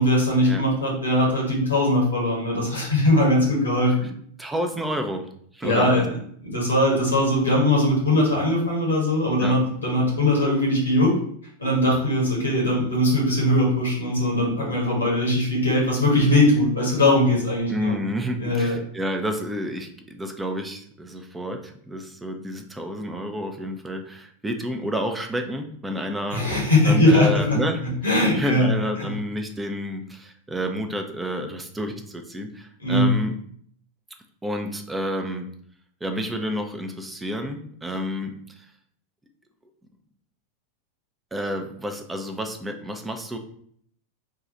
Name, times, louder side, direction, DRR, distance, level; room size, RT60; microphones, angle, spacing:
voice 1, 0.0-4.1 5.6-6.1 6.4-11.1 11.6-18.0 18.4-18.7 26.3-27.6 28.0-28.7 29.0-29.1 32.8-33.1, left 1 dB, 80° left, -2 dB, 1.5 m, -20 dB
voice 2, 4.4-5.3 5.5-6.0 9.4-9.6 17.7-27.8 28.3-33.3 34.4-35.5 36.0-38.7 41.3-43.4, equal, 10° right, 5 dB, 0.5 m, -30 dB
3.7 x 2.4 x 4.1 m, 0.64 s
figure-of-eight pair, 90°, 0 cm